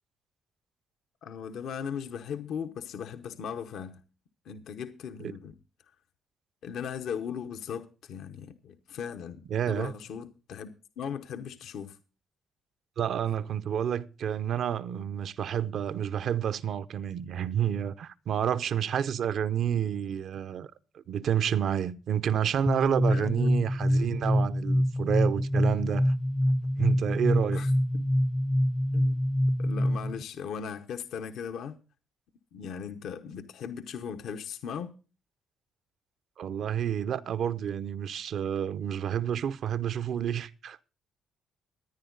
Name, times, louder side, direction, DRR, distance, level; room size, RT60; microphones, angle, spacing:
voice 1, 1.2-4.0 4.4-5.6 6.6-10.7 11.0-12.0 23.1-23.5 27.5-28.0 28.9-29.2 29.6-31.8 32.5-34.9, left 7 dB, 75° left, 0.9 m, -38 dB
voice 2, 9.5-9.9 13.0-20.7 20.9-26.1 26.8-27.7 36.4-40.8, right 9 dB, 65° right, 0.6 m, -29 dB
sound 1, 22.7-30.2, equal, 10° left, 0.5 m, -26 dB
14.0 x 10.0 x 3.9 m
cardioid pair, 90°, 0 cm